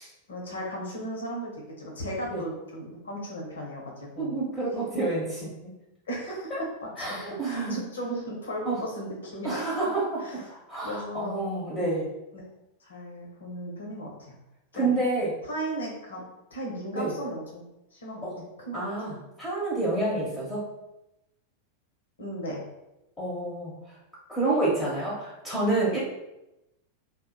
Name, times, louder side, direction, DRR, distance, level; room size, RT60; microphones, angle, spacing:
voice 1, 0.3-3.8 4.2-4.3 6.1-6.5 6.8-7.1 7.5-9.6 10.2-10.4 10.8-11.4 12.8-14.3 14.7-14.9 15.4-16.2 16.5-17.6 17.9-18.3 18.7-18.8 22.2-22.7, right 1 dB, 70° left, -2 dB, 0.8 m, -36 dB
voice 2, 4.2-5.5 6.5-6.6 7.0-7.8 8.7-8.8 9.4-10.2 10.5-12.1 14.7-15.4 16.9-17.1 18.2-18.4 18.7-20.7 23.2-24.0 24.3-26.0, right 2 dB, 10° left, -7 dB, 0.8 m, -28 dB
2.4 x 2.1 x 3.7 m, 0.91 s
figure-of-eight pair, 90°, 0 cm